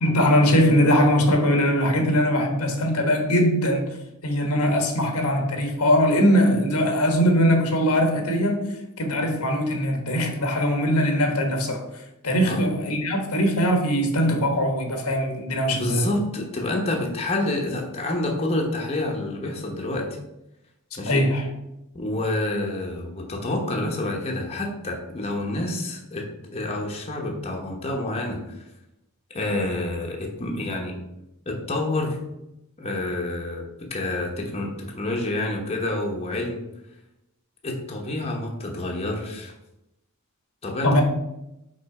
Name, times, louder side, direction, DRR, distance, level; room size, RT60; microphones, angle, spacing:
voice 1, 0.0-4.0 4.2-11.8 12.2-16.1 21.1-21.5 40.8-41.0, equal, 85° left, 3 dB, 1.2 m, -21 dB
voice 2, 12.4-12.7 15.7-20.2 21.0-21.2 21.9-26.3 26.5-28.7 29.3-31.0 31.5-32.2 32.8-36.6 37.6-39.5 40.6-41.0, left 2 dB, 30° left, 0 dB, 1.0 m, -28 dB
5.3 x 3.8 x 4.8 m, 0.89 s
head